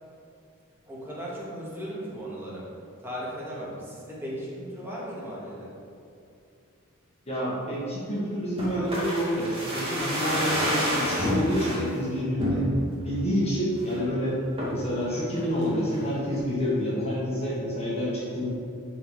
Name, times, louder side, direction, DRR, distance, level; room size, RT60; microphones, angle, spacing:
voice 1, 0.9-2.6 3.0-5.7, equal, 10° right, -6 dB, 2.2 m, -36 dB
voice 2, 7.3-12.7 13.0-14.4 14.7-18.5, equal, 30° left, -6 dB, 1.8 m, -28 dB
sound 1, 8.6-11.8 12.4-13.0 13.4-13.5 13.8-14.1 14.6-14.9 15.4-16.1 16.3-16.4, equal, 25° right, 2.2 m, -28 dB
11.0 x 4.6 x 5.0 m, 2.5 s
head